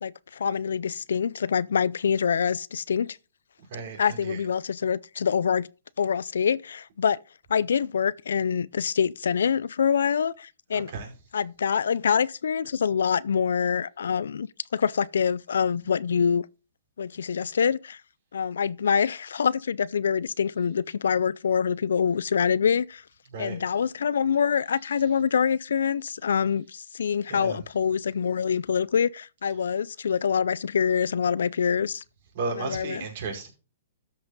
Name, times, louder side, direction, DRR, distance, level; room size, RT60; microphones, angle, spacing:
voice 1, 0.0-3.1 4.0-5.7 6.0-7.2 7.5-10.9 11.3-14.5 14.7-16.5 17.0-18.0 18.3-23.0 23.4-32.0 32.6-33.0, left 7 dB, 80° left, 0.4 m, -25 dB
voice 2, 3.7-4.4 10.7-11.1 23.3-23.6 27.3-27.6 32.3-33.5, right 4 dB, 55° right, 4.9 m, -34 dB
13.0 x 5.8 x 3.9 m
hypercardioid pair, 135°, 0 cm